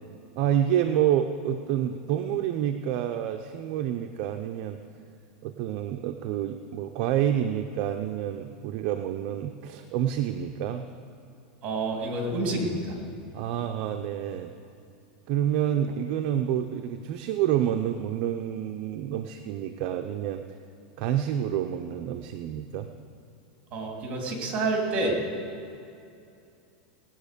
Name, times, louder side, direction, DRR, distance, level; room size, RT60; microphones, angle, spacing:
voice 1, 0.4-4.8 5.4-10.9 13.3-14.5 15.3-20.4 21.0-22.9, right 10 dB, 50° right, 6 dB, 0.7 m, -28 dB
voice 2, 11.6-12.9 23.7-25.2, right 2 dB, 30° right, 1 dB, 3.1 m, -28 dB
18.5 x 9.2 x 6.7 m, 2.6 s
supercardioid pair, 145°, 5 cm